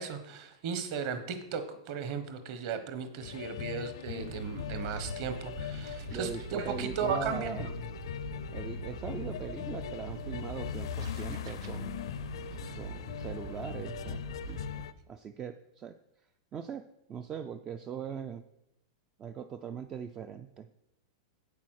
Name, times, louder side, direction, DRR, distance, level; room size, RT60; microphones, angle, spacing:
voice 1, 0.0-7.7, right 6 dB, 40° right, 9 dB, 1.1 m, -36 dB
sound 1, 3.2-14.9, left 10 dB, 65° left, 0.5 m, -40 dB
sound 2, 4.2-14.9, right 5 dB, 60° right, 1.4 m, -44 dB
voice 2, 6.1-7.7 8.5-12.0 12.8-14.6 15.1-16.0 16.5-18.4 19.2-20.7, right 7 dB, 15° right, 10 dB, 0.3 m, -41 dB
8.4 x 8.3 x 6.3 m, 0.87 s
supercardioid pair, 175°, 3 cm